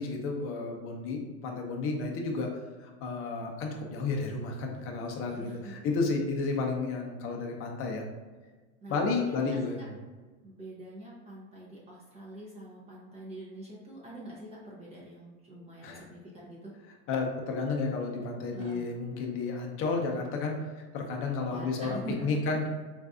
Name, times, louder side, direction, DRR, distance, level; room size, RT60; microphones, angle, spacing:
voice 1, 0.0-8.0 8.9-10.0 15.8-16.1 17.1-22.7, left 4 dB, 30° left, 1 dB, 0.6 m, -32 dB
voice 2, 5.3-5.7 8.8-9.9 10.4-16.7 18.5-18.9 21.4-22.1, right 1 dB, 15° right, -5 dB, 0.4 m, -45 dB
3.9 x 2.5 x 2.3 m, 1.4 s
supercardioid pair, 130°, 41 cm